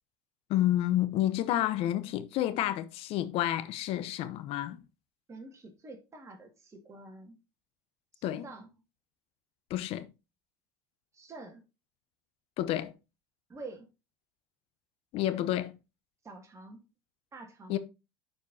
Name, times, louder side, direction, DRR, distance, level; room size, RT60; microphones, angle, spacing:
voice 1, 0.5-4.8 8.2-8.4 9.7-10.1 12.6-12.9 15.1-15.7 17.7-17.8, left 13 dB, 55° left, 0.9 m, -29 dB
voice 2, 5.3-7.4 8.2-8.7 11.1-11.6 13.5-13.9 16.2-16.8 17.3-17.8, right 3 dB, 25° right, 2.1 m, -47 dB
11.5 x 4.6 x 2.8 m
hypercardioid pair, 80°, 12 cm